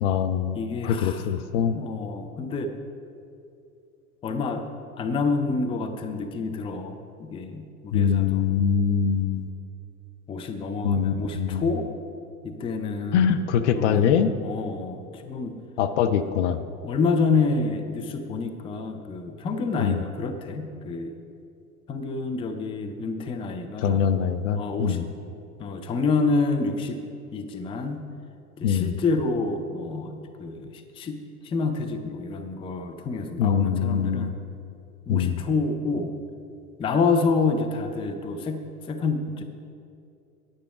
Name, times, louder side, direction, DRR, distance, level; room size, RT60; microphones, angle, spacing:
voice 1, 0.0-0.6 0.8-1.7 7.9-9.5 10.8-11.7 13.1-14.3 15.8-16.6 19.8-20.0 23.8-25.1 28.6-28.9 33.4-34.3 35.1-35.4, left 8 dB, 55° left, 9 dB, 0.7 m, -23 dB
voice 2, 0.5-1.2 1.7-2.7 4.2-4.6 5.0-8.4 10.3-11.9 12.4-13.3 13.7-15.5 16.8-21.2 21.9-24.0 24.5-25.1 25.6-27.0 27.3-28.0 28.6-34.3 35.1-36.1 36.8-38.6 38.9-39.4, left 4 dB, 15° left, 7 dB, 0.5 m, -28 dB
9.9 x 8.8 x 4.8 m, 2.6 s
figure-of-eight pair, 80°, 44 cm